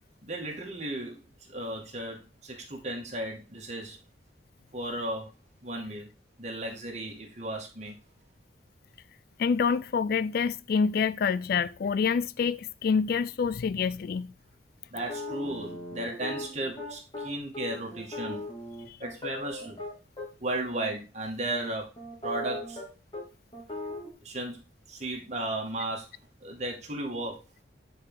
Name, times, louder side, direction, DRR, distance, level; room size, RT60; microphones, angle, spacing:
voice 1, 0.2-1.2 1.5-4.0 4.7-5.3 5.6-6.1 6.4-8.0 14.9-18.5 19.0-19.8 20.4-21.9 22.2-22.8 24.2-26.1 26.4-27.4, right 1 dB, 40° right, 2.1 m, -35 dB
voice 2, 9.4-14.3 18.9-19.0, left 6 dB, 55° left, 0.3 m, -27 dB
sound 1, 15.0-20.3 20.7-21.0 21.5-22.9 23.1-23.2 23.5-24.1, left 1 dB, 25° left, 2.4 m, -38 dB
9.7 x 4.8 x 3.8 m
head